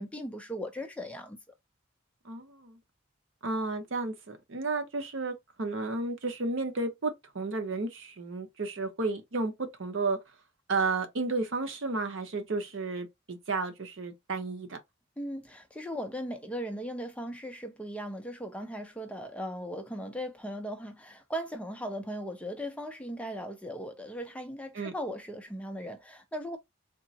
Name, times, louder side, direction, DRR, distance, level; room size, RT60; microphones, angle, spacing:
voice 1, 0.0-1.4 15.2-26.6, equal, 5° left, 0.4 m, -38 dB
voice 2, 2.2-2.8 3.4-10.2 10.7-14.8 24.7-24.9, right 3 dB, 75° right, 0.7 m, -32 dB
3.6 x 2.0 x 2.7 m
head